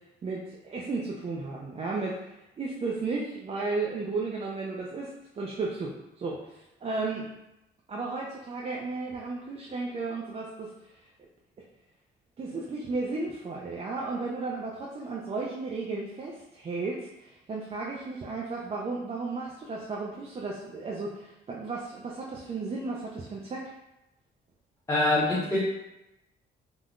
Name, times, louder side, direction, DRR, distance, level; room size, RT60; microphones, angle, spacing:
voice 1, 0.2-7.3 7.9-10.7 12.4-23.7, right 3 dB, 30° right, -3 dB, 0.4 m, -34 dB
voice 2, 24.9-25.6, left 2 dB, 15° left, -7 dB, 0.6 m, -24 dB
3.5 x 2.5 x 2.3 m, 0.91 s
cardioid pair, 90°, 20 cm